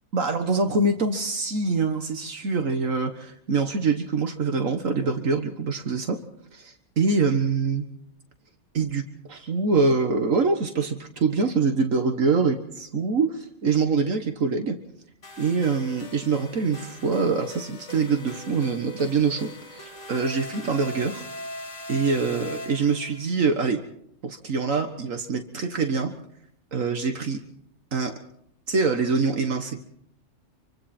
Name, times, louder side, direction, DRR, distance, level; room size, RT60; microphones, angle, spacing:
voice 1, 0.1-6.2 6.5-7.8 8.7-14.8 15.4-21.2 21.9-23.8 24.2-26.1 26.7-27.4 27.9-28.1 28.7-29.8, right 4 dB, 80° right, 6 dB, 1.8 m, -24 dB
sound 1, 15.2-23.3, left 1 dB, 65° left, 2.8 m, -40 dB
27.0 x 24.5 x 4.4 m, 0.70 s
omnidirectional pair, 1.4 m